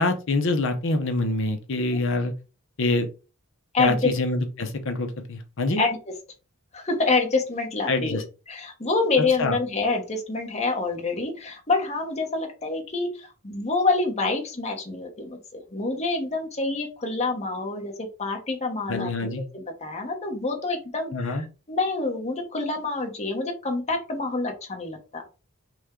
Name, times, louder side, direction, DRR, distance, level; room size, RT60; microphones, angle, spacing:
voice 1, 0.0-2.3 2.8-3.1 3.8-5.8 7.9-8.2 9.4-9.6 18.9-19.5 21.1-21.4, left 2 dB, 60° left, 6 dB, 0.7 m, -25 dB
voice 2, 3.7-4.1 5.8-6.1 6.7-8.2 8.5-25.2, left 3 dB, 30° left, 2 dB, 1.0 m, -27 dB
6.0 x 2.3 x 3.7 m, 0.32 s
head